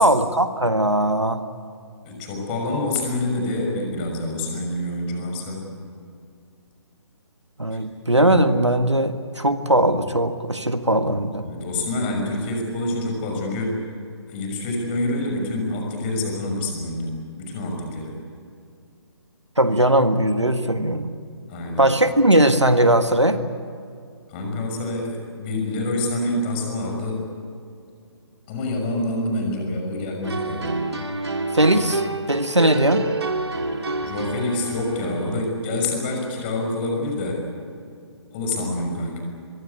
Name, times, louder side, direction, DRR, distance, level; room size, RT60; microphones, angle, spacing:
voice 1, 0.0-1.4 7.6-11.4 19.6-21.1 21.8-23.4 31.5-33.1, right 1 dB, 85° right, 9 dB, 1.7 m, -19 dB
voice 2, 2.0-5.6 11.4-13.8 14.3-17.1 17.4-18.1 21.5-21.9 24.3-27.2 28.5-30.8 34.0-37.4 38.3-39.2, left 2 dB, 25° left, 2 dB, 6.2 m, -26 dB
sound 1, 30.2-35.4, right 2 dB, 70° right, 2.8 m, -28 dB
25.0 x 22.5 x 8.4 m, 2.4 s
figure-of-eight pair, 140°, 15 cm